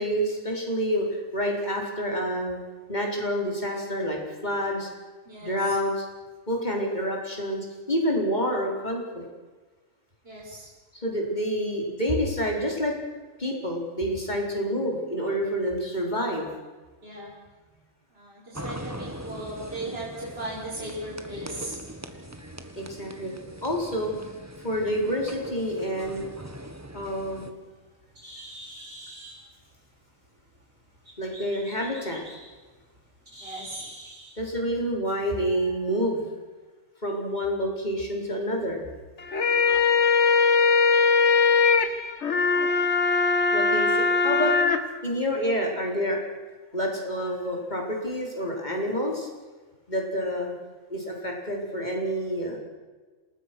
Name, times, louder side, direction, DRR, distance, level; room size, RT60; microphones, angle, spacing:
voice 1, 0.0-2.6 2.9-4.9 5.4-6.0 6.5-9.3 10.9-13.0 13.4-16.5 22.8-23.3 23.6-24.2 24.6-26.3 26.9-27.5 31.2-32.2 34.4-36.3 37.0-38.8 43.5-44.6 45.0-46.2 46.7-49.3 49.9-50.5 50.9-52.6, equal, 35° left, 0 dB, 4.7 m, -28 dB
voice 2, 5.3-5.8 10.2-10.7 17.0-17.3 18.1-21.8 33.4-33.9, right 1 dB, 50° right, -5 dB, 5.6 m, -37 dB
sound 1, 18.5-27.5, right 1 dB, 10° right, 1.5 m, -41 dB
Bird, 27.3-34.4, right 1 dB, 85° right, 7.9 m, -46 dB
sound 2, 39.2-44.8, left 5 dB, 60° left, 1.7 m, -21 dB
28.0 x 19.5 x 6.2 m, 1.3 s
omnidirectional pair, 1.4 m